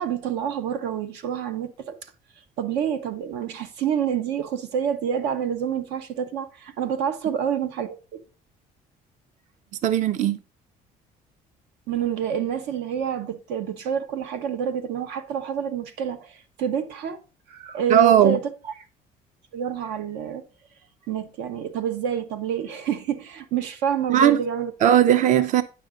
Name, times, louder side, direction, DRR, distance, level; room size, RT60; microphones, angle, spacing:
voice 1, 0.0-2.1 2.6-8.2 11.9-17.2 17.5-18.4 19.5-20.4 21.1-24.7, right 8 dB, 90° right, 1.0 m, -28 dB
voice 2, 9.8-10.4 17.9-18.4 24.1-24.4 24.8-25.6, right 10 dB, 50° right, 0.5 m, -17 dB
9.2 x 6.2 x 3.8 m
cardioid pair, 130°, 17 cm